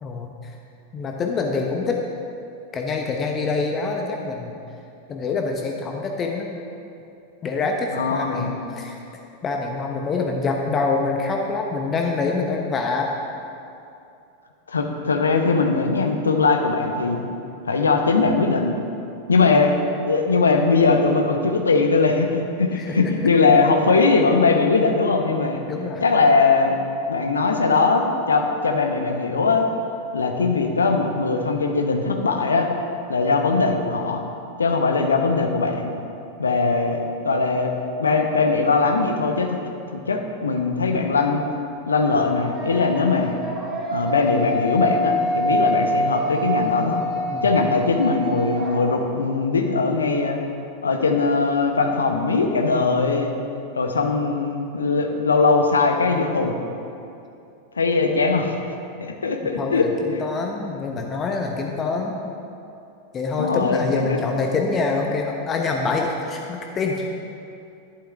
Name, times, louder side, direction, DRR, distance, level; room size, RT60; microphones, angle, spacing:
voice 1, 0.0-0.5 0.9-2.0 2.7-4.5 5.1-6.5 7.4-9.0 9.4-13.1 19.4-19.6 22.7-23.3 25.7-26.0 30.4-30.6 47.3-47.5 59.4-62.1 63.1-67.1, left 4 dB, 25° left, 2 dB, 0.9 m, -26 dB
voice 2, 7.9-8.7 14.7-17.3 17.6-18.8 19.3-19.7 20.1-25.6 26.0-26.7 27.1-29.7 30.1-32.7 33.1-34.3 34.6-35.9 36.4-39.6 39.9-41.4 41.9-43.4 43.9-47.0 47.4-50.4 50.8-53.4 53.8-56.6 57.8-58.5 59.0-60.2 63.4-64.2, left 4 dB, 75° left, 4 dB, 1.0 m, -20 dB
muezzin speaker nah, 38.7-39.5 42.0-49.4, equal, 10° right, 2.2 m, -26 dB
11.5 x 11.5 x 3.5 m, 2.7 s
figure-of-eight pair, 90°, 0 cm